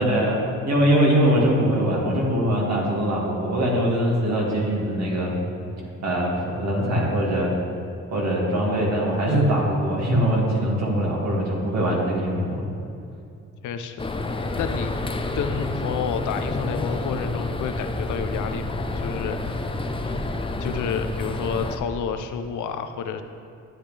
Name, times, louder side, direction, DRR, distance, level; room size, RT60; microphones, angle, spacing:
voice 1, 0.0-5.3 6.0-7.5 8.1-12.7, right 1 dB, 60° right, -3 dB, 2.2 m, -22 dB
voice 2, 13.6-14.0 14.3-15.0 15.3-19.7 20.0-20.4 20.6-23.2, left 7 dB, 75° left, 8 dB, 0.7 m, -30 dB
sound 1, 14.0-21.8, left 2 dB, 15° left, 0.6 m, -29 dB
12.0 x 8.8 x 3.4 m, 2.5 s
cardioid pair, 90°, 30 cm